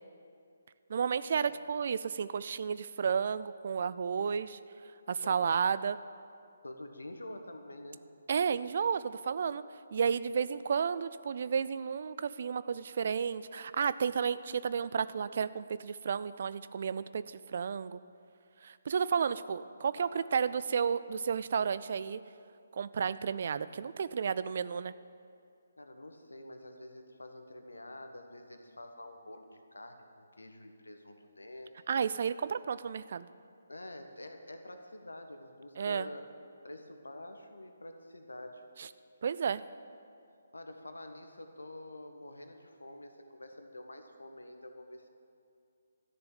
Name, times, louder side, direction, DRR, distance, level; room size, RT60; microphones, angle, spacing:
voice 1, 0.9-4.6 5.1-6.0 8.3-9.6 9.9-18.0 18.6-22.2 22.7-24.9 31.9-33.3 35.8-36.1 38.8-38.9 39.2-39.6, right 6 dB, 50° right, 15 dB, 0.4 m, -32 dB
voice 2, 5.2-5.6 6.6-8.1 19.8-20.5 25.8-31.9 33.7-36.2 36.6-38.6 40.5-45.1, left 1 dB, 80° left, 6 dB, 1.4 m, -47 dB
13.0 x 7.0 x 9.2 m, 2.4 s
figure-of-eight pair, 140°, 0 cm